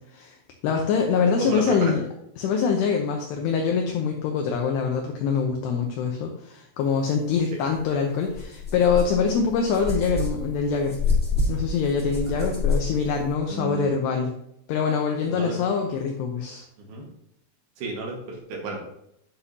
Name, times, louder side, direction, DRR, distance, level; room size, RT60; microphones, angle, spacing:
voice 1, 0.6-2.0 2.4-11.0 11.5-14.3 14.7-16.6, left 5 dB, 75° left, 2 dB, 2.6 m, -24 dB
voice 2, 1.4-1.9 7.5-7.6 12.4-12.5 13.5-13.9 15.3-15.6 16.8-17.1 17.8-18.9, right 2 dB, 65° right, 0 dB, 3.0 m, -32 dB
sound 1, 7.7-7.8 8.3-13.3, left 3 dB, ahead, 1.5 m, -28 dB
9.8 x 7.9 x 2.7 m, 0.76 s
omnidirectional pair, 5.6 m